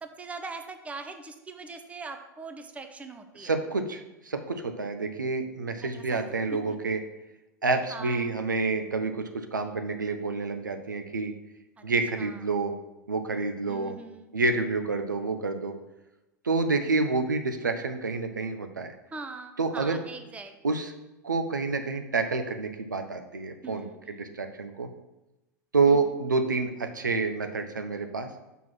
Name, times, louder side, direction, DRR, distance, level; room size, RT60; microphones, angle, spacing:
voice 1, 0.0-3.5 6.1-6.2 6.5-6.8 7.9-8.3 12.2-12.4 13.7-14.3 19.1-20.5 23.6-24.4 25.9-26.0, right 3 dB, 15° right, 7 dB, 0.6 m, -41 dB
voice 2, 3.4-7.0 7.6-11.3 11.8-12.7 13.1-13.9 14.3-15.7 16.4-18.9 19.6-20.0 20.6-20.9 21.2-24.9 25.7-28.3, right 3 dB, 80° right, 6 dB, 0.6 m, -28 dB
5.9 x 3.7 x 5.8 m, 0.98 s
figure-of-eight pair, 85°, 10 cm